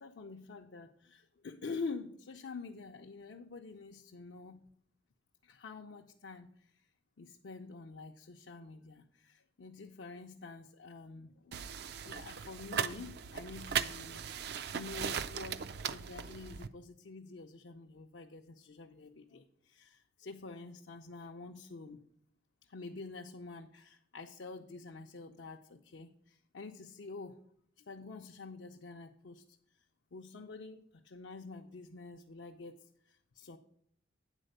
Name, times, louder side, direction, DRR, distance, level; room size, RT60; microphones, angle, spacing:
voice 1, 0.0-4.6 5.4-6.5 7.2-11.7 12.0-14.2 14.7-22.0 22.7-27.4 27.8-29.4 30.1-33.6, left 3 dB, 65° left, 2 dB, 0.5 m, -47 dB
sound 1, 11.5-16.7, right 7 dB, 55° right, 0.4 m, -38 dB
9.0 x 4.2 x 6.5 m, 0.67 s
head